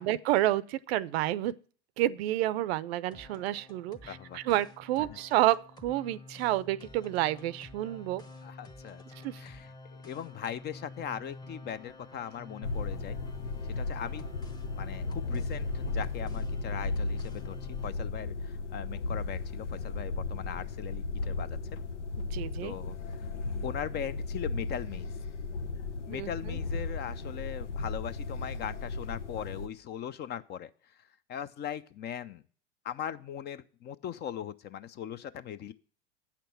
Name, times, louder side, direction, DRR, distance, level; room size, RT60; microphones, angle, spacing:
voice 1, 0.0-1.5 2.0-5.6 5.8-8.2 9.2-9.4 22.3-22.7 26.1-26.6, right 15 dB, 60° right, 0.6 m, -29 dB
sound 1, 3.1-17.9, left 2 dB, 10° left, 1.0 m, -49 dB
voice 2, 4.1-4.4 5.1-5.2 8.4-9.0 9.4-13.2 13.6-14.2 14.8-21.6 22.6-23.0 23.6-25.1 26.1-32.4 32.8-35.7, left 9 dB, 30° left, 0.5 m, -40 dB
sound 2, 12.6-29.7, left 3 dB, 85° left, 0.8 m, -35 dB
8.6 x 5.9 x 6.8 m
hypercardioid pair, 95°, 35 cm